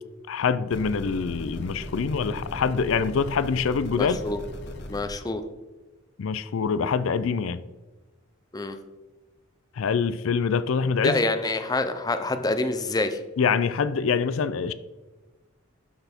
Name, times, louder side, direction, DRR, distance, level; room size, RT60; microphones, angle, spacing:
voice 1, 0.3-4.2 6.2-7.6 9.8-11.2 13.4-14.7, left 5 dB, 75° left, 14 dB, 0.4 m, -25 dB
sound 1, 0.7-5.1, left 1 dB, 55° left, 1.0 m, -38 dB
voice 2, 4.0-4.4 4.9-5.4 8.5-8.8 11.0-13.2, left 2 dB, 20° left, 9 dB, 0.5 m, -26 dB
12.0 x 4.2 x 4.3 m, 1.2 s
head